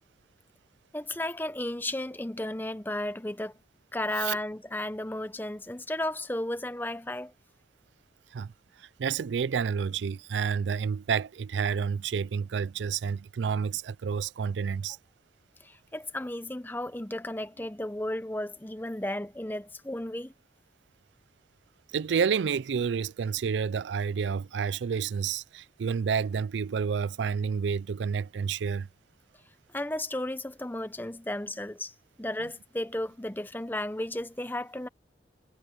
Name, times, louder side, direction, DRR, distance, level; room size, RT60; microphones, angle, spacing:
voice 1, 0.9-3.5 3.9-7.3 15.6-20.3 29.7-34.9, left 1 dB, 10° left, 0.8 m, -34 dB
voice 2, 8.8-15.0 21.9-28.9, right 6 dB, 90° right, 0.4 m, -29 dB
head